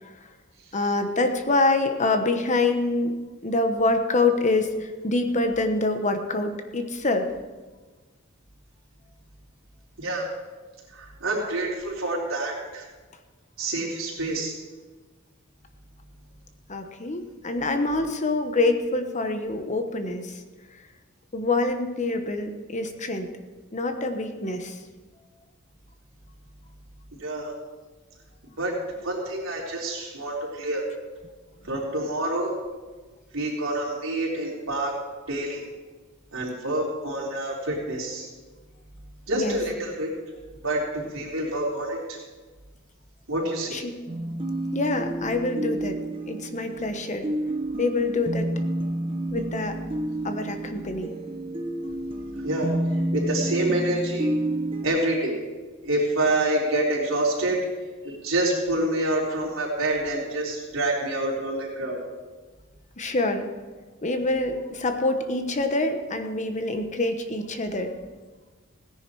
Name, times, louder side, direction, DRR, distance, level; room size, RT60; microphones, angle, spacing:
voice 1, 0.7-3.1 3.4-7.3 16.7-20.4 21.3-23.3 23.7-24.8 39.3-39.6 43.7-43.9 44.7-46.0 46.3-47.3 47.8-48.5 49.3-49.8 50.2-51.1 63.0-63.5 64.0-67.9, left 2 dB, 35° left, 7 dB, 1.1 m, -25 dB
voice 2, 10.9-12.8 13.6-14.5 27.2-27.5 28.6-28.7 29.0-30.8 31.6-32.5 33.3-34.9 35.3-35.6 36.3-38.3 39.3-40.1 40.6-42.2 43.3-43.8 52.4-54.3 54.8-55.4 55.8-57.7 58.0-62.0, right 1 dB, 75° right, -3 dB, 4.1 m, -27 dB
sound 1, 44.1-54.9, right 1 dB, 25° right, 1.3 m, -30 dB
17.0 x 10.5 x 4.8 m, 1.3 s
head